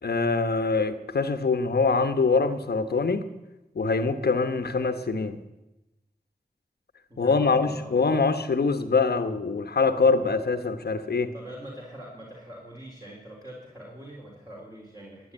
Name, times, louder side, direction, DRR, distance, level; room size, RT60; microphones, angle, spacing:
voice 1, 0.0-3.3 3.7-5.4 7.2-11.3, left 4 dB, 80° left, 9 dB, 1.1 m, -24 dB
voice 2, 7.1-7.9 11.3-15.3, right 1 dB, 20° right, -4 dB, 3.8 m, -43 dB
13.5 x 9.3 x 8.8 m, 0.98 s
cardioid pair, 40°, 16 cm